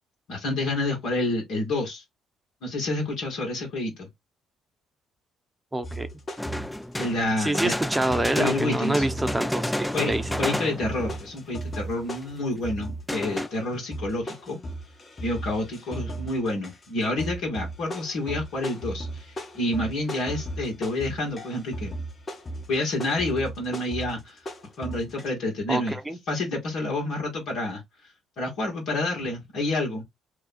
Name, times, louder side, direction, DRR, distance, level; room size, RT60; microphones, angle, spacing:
voice 1, 0.3-2.0 2.6-4.1 7.0-7.7 8.3-9.1 9.9-10.1 10.4-14.6 15.2-21.9 22.7-24.4 24.8-26.0 26.3-27.8 28.4-30.0, left 2 dB, 65° left, 1.3 m, -28 dB
voice 2, 5.7-6.1 7.4-10.3 25.7-26.2, right 2 dB, 15° right, 0.8 m, -27 dB
sound 1, 5.8-7.3 7.5-25.2, right 1 dB, 35° left, 1.2 m, -36 dB
sound 2, 6.4-11.2 11.6-11.7 12.2-12.3 13.1-13.5, left 1 dB, 5° left, 0.3 m, -30 dB
2.8 x 2.3 x 4.2 m
hypercardioid pair, 50°, 0 cm